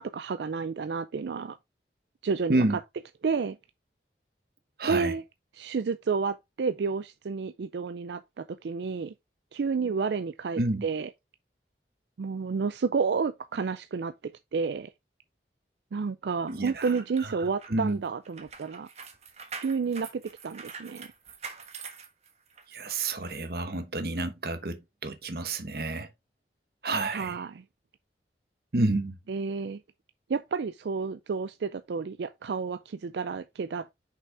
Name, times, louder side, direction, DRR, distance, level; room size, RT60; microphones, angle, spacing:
voice 1, 0.0-1.6 2.2-2.8 3.2-3.6 4.9-5.2 5.5-9.1 9.5-11.1 12.2-14.9 15.9-18.9 19.6-21.1 27.1-27.6 29.3-29.8 30.3-33.9, right 5 dB, 75° right, 0.4 m, -30 dB
voice 2, 4.8-5.1 10.6-10.8 16.5-16.9 17.4-18.0 22.7-24.8 25.0-26.1 26.8-27.4 28.7-29.1, right 2 dB, 60° right, 1.1 m, -29 dB
sound 1, 16.5-22.8 23.2-23.4, right 5 dB, 40° right, 1.3 m, -45 dB
6.1 x 5.6 x 3.4 m
head